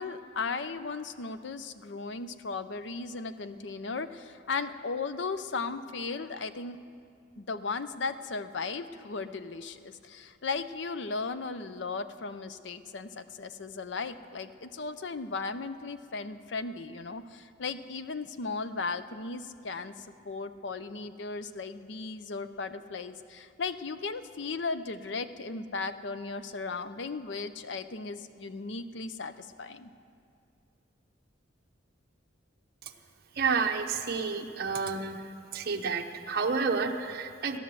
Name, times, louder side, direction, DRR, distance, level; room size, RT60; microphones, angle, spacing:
voice 1, 0.0-6.8 7.4-29.9, left 4 dB, 65° left, 12 dB, 0.6 m, -36 dB
voice 2, 33.4-35.2 35.5-37.6, right 5 dB, 55° right, 4 dB, 0.9 m, -30 dB
14.5 x 10.5 x 7.5 m, 2.4 s
head